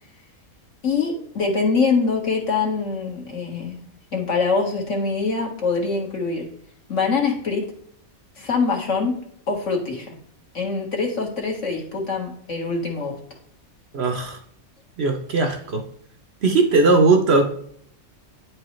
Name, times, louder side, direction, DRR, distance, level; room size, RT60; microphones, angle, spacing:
voice 1, 0.8-3.8 4.1-6.5 6.9-7.7 8.4-9.2 9.5-10.2 10.5-13.1, left 4 dB, 60° left, -1 dB, 1.8 m, -24 dB
voice 2, 13.9-14.4 15.0-15.8 16.4-17.4, right 3 dB, 55° right, 4 dB, 0.9 m, -18 dB
9.7 x 4.6 x 3.1 m, 0.67 s
omnidirectional pair, 1.5 m